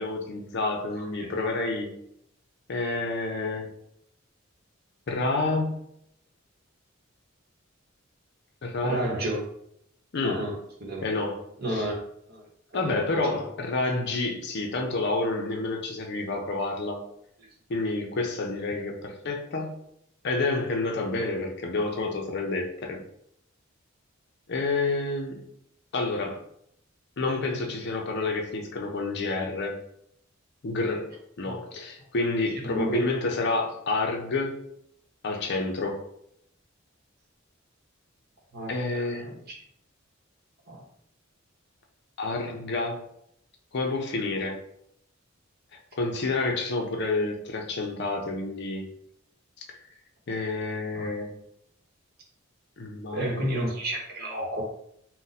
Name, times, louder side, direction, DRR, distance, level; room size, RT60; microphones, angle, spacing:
voice 1, 0.0-2.0 2.7-3.7 5.1-5.8 8.6-9.1 10.1-10.5 11.0-11.4 11.7-11.8 12.7-17.0 17.7-19.8 20.2-23.0 24.5-25.4 25.9-26.4 27.2-29.8 30.6-34.7 35.2-36.0 38.7-39.4 42.2-43.0 43.7-44.6 46.0-48.9 50.3-51.4 52.8-53.4, left 3 dB, 55° left, 2 dB, 0.5 m, -29 dB
voice 2, 1.0-1.3 8.8-9.5 10.2-11.0 11.6-12.0 12.3-12.5 12.8-13.0 13.3-13.4 31.4-31.5 32.6-33.1 38.5-39.1 39.5-39.6 40.7-40.8 50.9-51.1 53.1-54.6, right 1 dB, 50° right, -1 dB, 0.9 m, -31 dB
2.5 x 2.1 x 4.0 m, 0.72 s
head